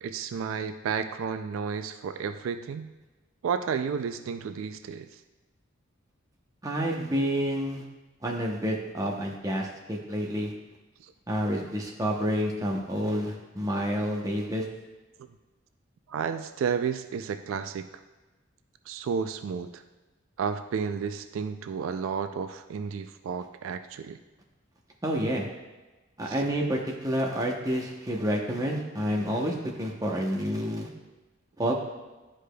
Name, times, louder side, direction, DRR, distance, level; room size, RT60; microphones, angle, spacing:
voice 1, 0.0-2.9 3.4-5.1 11.0-11.1 16.1-17.9 18.9-19.8 20.4-24.2 26.3-26.4, right 6 dB, 80° right, 9 dB, 0.3 m, -32 dB
voice 2, 6.6-7.8 8.2-10.5 11.3-14.6 25.0-25.4 26.2-30.9 31.6-31.7, equal, 15° right, -1 dB, 0.8 m, -29 dB
11.0 x 4.9 x 2.2 m, 1.2 s
head